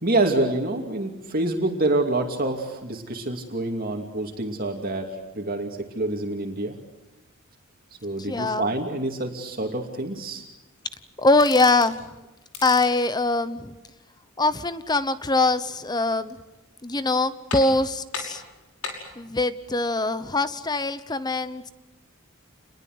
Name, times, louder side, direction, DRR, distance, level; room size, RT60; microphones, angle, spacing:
voice 1, 0.0-6.8 8.0-10.4, right 2 dB, 45° right, 2 dB, 2.7 m, -27 dB
voice 2, 8.2-8.7 11.2-12.0 12.6-13.7 14.4-16.4 16.8-18.4 19.2-21.7, left 2 dB, 20° left, 13 dB, 0.9 m, -23 dB
sound 1, 11.4-12.0 12.4-13.0 16.0-16.6 17.0-17.1 17.5-17.9 18.1-19.1, left 4 dB, 85° left, 5.8 m, -36 dB
28.5 x 21.0 x 8.0 m, 1.0 s
head